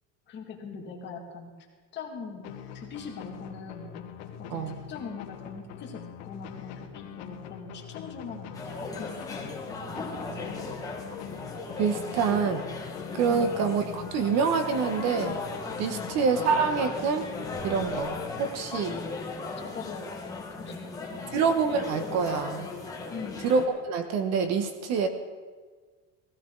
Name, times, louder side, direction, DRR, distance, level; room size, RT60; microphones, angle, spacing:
voice 1, 0.3-1.5 1.9-3.9 4.4-4.6 4.9-9.6 10.1-10.7 13.3-13.6 15.9-16.2 18.9-19.1 19.7-21.4 23.1-23.4, left 5 dB, 30° left, 0 dB, 2.2 m, -42 dB
sound 1, 2.4-19.0, left 8 dB, 65° left, 1.5 m, -44 dB
sound 2, 8.5-23.7, left 3 dB, 10° left, 1.5 m, -37 dB
voice 2, 11.8-12.6 13.1-15.4 15.8-17.3 17.6-18.9 21.3-22.7 23.4-25.1, right 5 dB, 50° right, 8 dB, 1.2 m, -26 dB
16.5 x 16.5 x 3.9 m, 1.5 s
cardioid pair, 170°, 35 cm